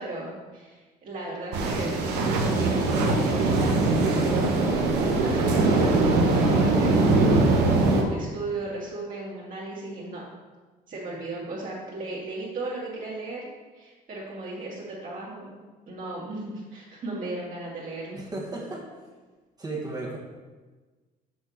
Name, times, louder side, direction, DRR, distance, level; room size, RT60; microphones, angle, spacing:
voice 1, 0.0-10.2 10.9-13.4 13.7-15.5 15.9-18.2, right 2 dB, 55° right, -6 dB, 2.2 m, -36 dB
sound 1, 1.5-8.0, right 3 dB, 90° right, 1.1 m, -22 dB
voice 2, 18.1-18.9 19.6-20.2, right 2 dB, 20° right, -2 dB, 1.3 m, -34 dB
6.2 x 4.4 x 6.4 m, 1.3 s
cardioid pair, 110°, 17 cm